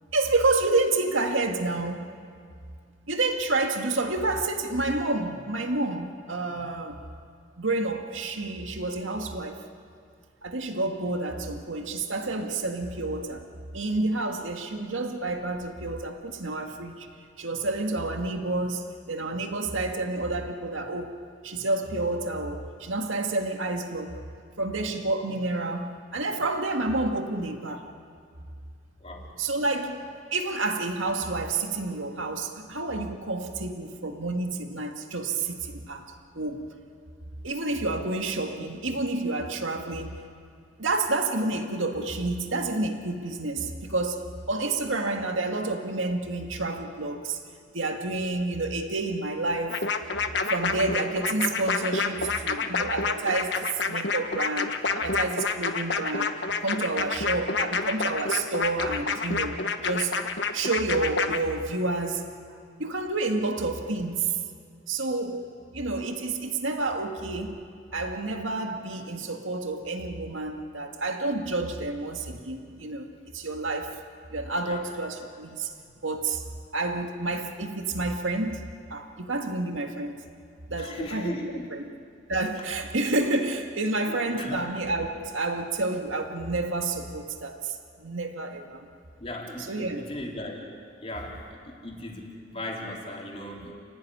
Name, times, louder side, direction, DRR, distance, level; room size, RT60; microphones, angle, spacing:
voice 1, 0.1-2.1 3.1-7.0 7.6-9.6 10.4-13.5 13.7-17.1 17.4-21.2 21.4-24.2 24.6-27.9 29.4-36.7 37.4-40.2 40.8-47.4 47.7-49.9 50.5-56.3 56.6-60.3 60.5-62.3 62.8-64.4 64.9-65.4 65.7-67.6 67.9-74.0 74.3-75.7 76.0-76.4 76.7-80.2 80.7-81.9 82.3-88.9 89.6-90.1 93.6-93.7, right 2 dB, 90° right, 4 dB, 2.1 m, -29 dB
sound 1, 49.7-61.4, left 4 dB, 65° left, 1.3 m, -28 dB
voice 2, 80.8-81.8 84.3-84.6 89.2-90.6 91.0-93.7, left 1 dB, 30° left, -2 dB, 4.0 m, -37 dB
30.0 x 16.5 x 9.9 m, 2.3 s
head